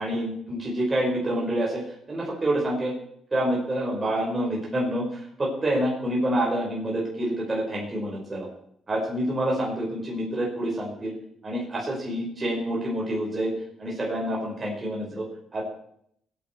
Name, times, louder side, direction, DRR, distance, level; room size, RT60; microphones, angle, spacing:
voice 1, 0.0-2.9 3.3-8.5 8.9-11.1 11.4-13.5 13.8-15.3 15.5-15.6, right 1 dB, 25° right, -4 dB, 5.1 m, -27 dB
20.0 x 9.4 x 4.7 m, 0.70 s
cardioid pair, 90°, 0 cm